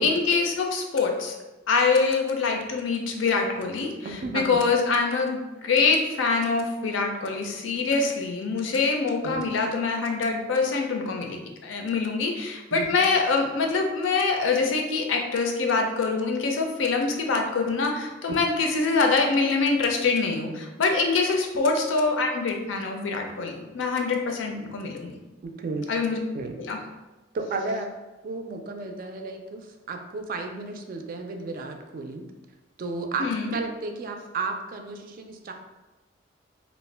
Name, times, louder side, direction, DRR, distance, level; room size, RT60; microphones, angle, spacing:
voice 1, 0.0-1.3 1.7-25.2 25.9-26.2 26.6-26.8 33.2-33.5, left 4 dB, 85° left, 3 dB, 0.4 m, -25 dB
voice 2, 4.0-4.6 9.2-9.4 12.7-13.0 18.3-18.4 25.4-25.9 26.3-26.6 27.3-27.9 28.2-32.2 32.8-33.3 33.5-35.5, right 3 dB, 50° right, 5 dB, 0.3 m, -33 dB
2.4 x 2.1 x 3.2 m, 1.1 s
head